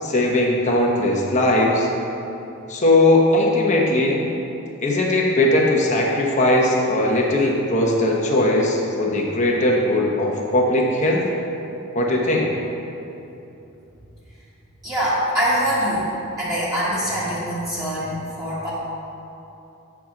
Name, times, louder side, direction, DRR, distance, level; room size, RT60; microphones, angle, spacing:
voice 1, 0.0-1.9 2.7-4.2 4.8-11.2 11.9-12.5, left 1 dB, 35° left, -2 dB, 1.0 m, -19 dB
voice 2, 14.8-16.1 16.4-18.7, equal, 15° right, -11 dB, 1.5 m, -23 dB
8.5 x 5.9 x 3.8 m, 3.0 s
head